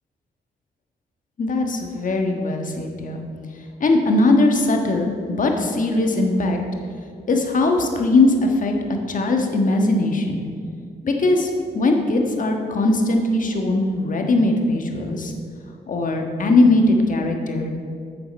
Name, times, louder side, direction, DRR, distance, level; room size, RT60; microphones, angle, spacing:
voice 1, 1.4-3.2 3.8-6.6 7.3-8.7 9.1-10.4 11.0-15.3 15.9-17.7, left 2 dB, 55° left, 3 dB, 1.5 m, -20 dB
8.6 x 6.8 x 6.4 m, 2.3 s
cardioid pair, 75°, 17 cm